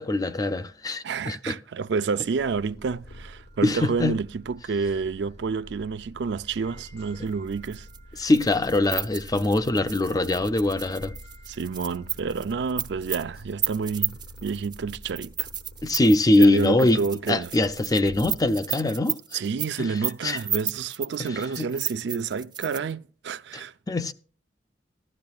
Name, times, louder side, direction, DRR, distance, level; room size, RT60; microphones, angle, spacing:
voice 1, 0.0-1.6 3.6-4.2 8.2-11.1 15.8-17.0 17.3-19.4 19.8-20.4 21.2-21.7 23.9-24.1, left 2 dB, 20° left, 0.5 m, -23 dB
voice 2, 1.0-7.9 8.2-8.3 11.5-15.5 16.4-17.5 19.3-23.7, right 5 dB, 70° right, 0.4 m, -29 dB
Purr, 2.0-18.8, equal, 65° left, 1.3 m, -47 dB
sound 1, 3.1-14.3, right 3 dB, 80° left, 6.1 m, -59 dB
sound 2, 7.5-22.9, right 9 dB, 25° right, 0.6 m, -33 dB
15.5 x 12.0 x 2.3 m
head